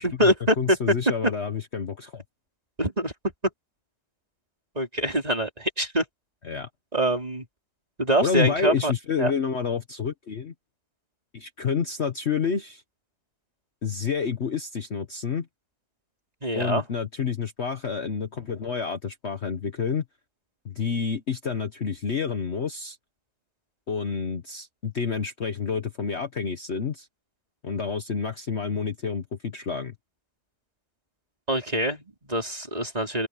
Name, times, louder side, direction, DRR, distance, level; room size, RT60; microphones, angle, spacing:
voice 1, 0.0-0.8 2.8-3.1 4.7-6.0 6.9-7.4 8.0-8.9 9.2-9.3 16.4-16.8 31.5-33.3, right 1 dB, 25° right, 4.9 m, -24 dB
voice 2, 0.6-2.2 6.4-6.7 8.2-10.5 11.3-12.8 13.8-15.5 16.5-20.0 20.6-23.0 23.9-27.1 27.6-29.9, left 6 dB, 45° left, 1.4 m, -29 dB
open air
omnidirectional pair, 1.7 m